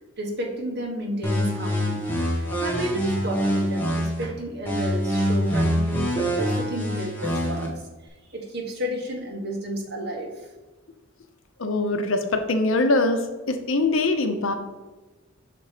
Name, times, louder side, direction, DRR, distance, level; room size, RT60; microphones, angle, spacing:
voice 1, 0.2-2.0 2.3-7.7 8.3-10.3, equal, 50° right, 1 dB, 1.2 m, -31 dB
sound 1, 1.2-4.2 4.6-7.7, equal, 10° left, 1.2 m, -25 dB
voice 2, 11.6-14.5, left 2 dB, 75° left, 7 dB, 0.7 m, -23 dB
5.9 x 4.2 x 4.9 m, 1.2 s
head